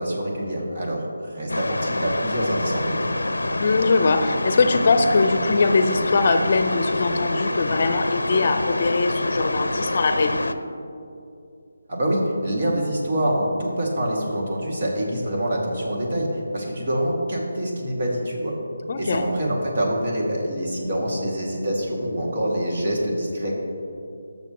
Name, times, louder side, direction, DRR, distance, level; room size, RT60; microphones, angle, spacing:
voice 1, 0.0-3.1 11.9-16.3 16.5-18.5 19.0-23.5, equal, 50° right, -2 dB, 2.3 m, -25 dB
sound 1, 1.5-10.5, left 2 dB, 85° left, 0.6 m, -26 dB
voice 2, 3.6-10.4 18.9-19.3, left 3 dB, 45° left, 8 dB, 0.6 m, -21 dB
18.5 x 6.8 x 3.0 m, 2.6 s
figure-of-eight pair, 160°, 0 cm